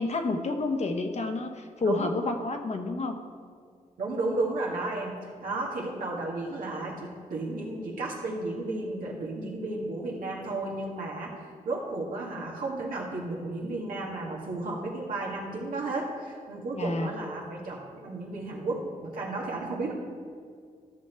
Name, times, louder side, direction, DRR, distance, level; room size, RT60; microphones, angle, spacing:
voice 1, 0.0-3.2 16.7-17.1, left 3 dB, 55° left, 5 dB, 1.1 m, -29 dB
voice 2, 4.0-11.4 11.7-19.9, right 2 dB, 85° right, -2 dB, 1.9 m, -33 dB
13.0 x 6.3 x 4.5 m, 2.1 s
cardioid pair, 60°, 14 cm